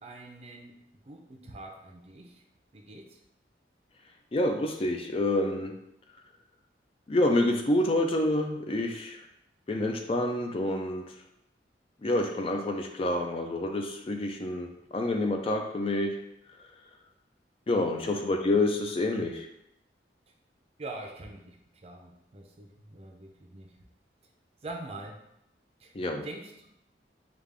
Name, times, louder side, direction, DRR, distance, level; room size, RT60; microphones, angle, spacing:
voice 1, 0.0-2.4 2.7-3.2 18.0-18.2 20.8-21.6 21.8-23.8 24.6-25.2 25.8-25.9 26.2-26.7, right 2 dB, 35° right, 2 dB, 0.5 m, -44 dB
voice 2, 4.3-5.7 7.1-9.2 9.7-11.0 12.0-16.2 16.6-16.7 17.7-19.5 25.9-26.2, left 1 dB, 30° left, 3 dB, 0.3 m, -28 dB
5.0 x 2.4 x 3.4 m, 0.81 s
head